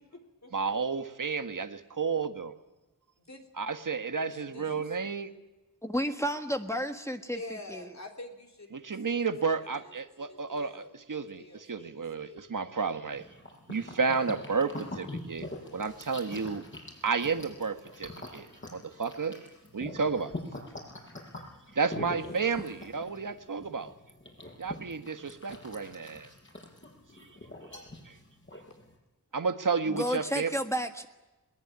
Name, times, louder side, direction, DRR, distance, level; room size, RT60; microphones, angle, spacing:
voice 1, 0.0-0.5 3.2-3.5 4.3-5.1 7.3-12.5 22.2-22.4, left 2 dB, 50° left, 2 dB, 3.7 m, -48 dB
voice 2, 0.5-2.5 3.6-5.3 8.8-10.8 11.1-13.3 13.7-16.6 17.0-19.4 19.7-20.3 21.7-23.9 24.6-26.3 28.0-28.2 29.3-30.5, right 5 dB, 65° right, 8 dB, 1.7 m, -31 dB
voice 3, 5.8-7.4 7.7-7.8 29.9-31.1, equal, 10° left, 5 dB, 1.6 m, -31 dB
sound 1, 13.1-28.9, left 1 dB, 35° left, 7.4 m, -44 dB
22.0 x 20.5 x 9.7 m, 1.1 s
wide cardioid pair, 90°, 34 cm